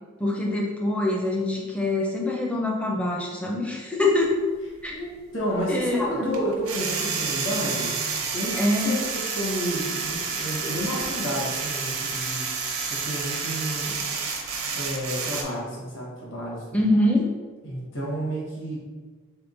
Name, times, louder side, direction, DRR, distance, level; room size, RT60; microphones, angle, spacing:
voice 1, 0.2-4.3 4.8-5.0 5.7-6.3 8.6-9.0 16.7-17.3, left 1 dB, 5° left, -1 dB, 0.5 m, -24 dB
sound 1, 4.2-4.3 6.3-15.4, right 5 dB, 80° right, 0.6 m, -29 dB
voice 2, 5.3-8.0 8.3-9.0 9.3-12.4 12.9-14.0 14.7-16.6 17.6-18.8, equal, 55° left, -5 dB, 1.4 m, -31 dB
3.6 x 3.1 x 3.9 m, 1.4 s
head